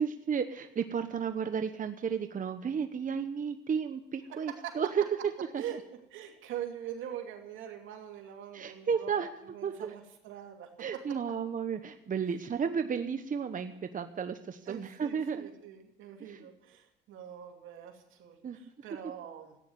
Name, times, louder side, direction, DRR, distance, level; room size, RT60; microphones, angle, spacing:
voice 1, 0.0-5.0 5.5-5.8 8.5-9.3 9.6-9.9 10.8-15.5 16.3-16.5 18.4-18.6, right 7 dB, 40° right, 8 dB, 1.1 m, -33 dB
voice 2, 4.3-4.9 5.6-5.8 6.1-9.1 9.5-11.4 14.7-19.6, right 10 dB, 85° right, 3 dB, 2.6 m, -43 dB
14.5 x 9.7 x 9.5 m, 0.80 s
cardioid pair, 90°, 20 cm